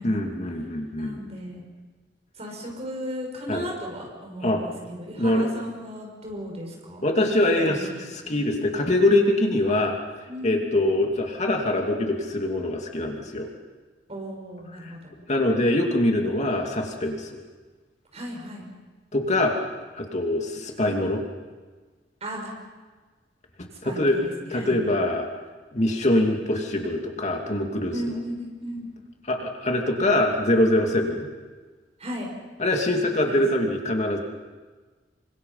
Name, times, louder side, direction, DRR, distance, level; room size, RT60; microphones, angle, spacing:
voice 1, 0.0-1.3 3.5-3.7 4.4-4.6 5.1-5.5 7.0-7.9 8.3-10.0 10.4-13.5 14.8-14.9 15.3-17.4 19.1-19.5 19.9-21.2 23.8-24.2 24.5-25.3 25.7-27.9 29.3-31.3 32.6-34.2, left 1 dB, 40° left, 2 dB, 2.7 m, -23 dB
voice 2, 1.0-1.6 2.4-7.0 7.6-7.8 8.0-8.5 10.3-10.8 14.1-15.1 18.1-18.7 22.2-22.5 23.8-24.8 27.9-28.9 32.0-32.3 33.3-33.4, equal, 35° right, 1 dB, 6.5 m, -35 dB
28.0 x 25.0 x 5.8 m, 1.4 s
head